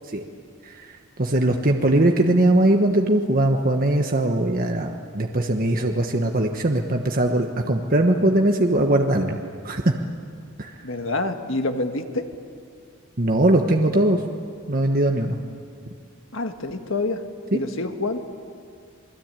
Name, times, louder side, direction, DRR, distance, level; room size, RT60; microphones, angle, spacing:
voice 1, 1.2-9.4 9.6-9.9 10.6-10.7 13.2-14.2 14.7-15.4 17.5-17.6, right 1 dB, 40° right, 3 dB, 1.3 m, -20 dB
voice 2, 10.8-12.3 16.3-17.2 17.5-18.2, left 2 dB, 60° left, 6 dB, 1.7 m, -27 dB
28.0 x 21.0 x 9.1 m, 2.3 s
head